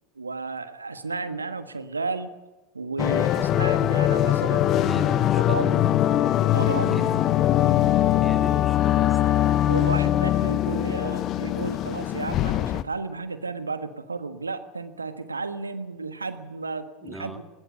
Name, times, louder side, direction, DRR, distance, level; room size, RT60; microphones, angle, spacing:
voice 1, 0.2-2.3 2.7-5.1 5.4-5.9 6.5-7.1 9.7-17.4, right 3 dB, 85° right, 10 dB, 1.4 m, -33 dB
sound 1, 3.0-12.8, left 12 dB, 40° left, 0.8 m, -22 dB
voice 2, 4.8-5.8 6.8-7.2 7.8-9.2 17.0-17.4, right 1 dB, 5° right, 5 dB, 2.6 m, -39 dB
20.5 x 18.5 x 8.1 m, 1.1 s
figure-of-eight pair, 80°, 0 cm